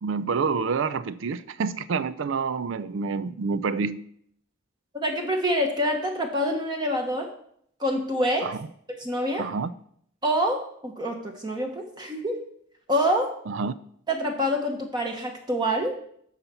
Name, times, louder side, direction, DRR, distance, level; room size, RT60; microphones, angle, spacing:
voice 1, 0.0-4.0 8.4-8.7 9.4-9.7 13.5-13.7, right 5 dB, 70° right, 0.4 m, -28 dB
voice 2, 5.0-7.3 7.8-8.5 9.0-9.4 10.2-12.4 12.9-13.3 14.1-15.9, equal, 20° right, 1.1 m, -26 dB
11.5 x 4.1 x 6.9 m
head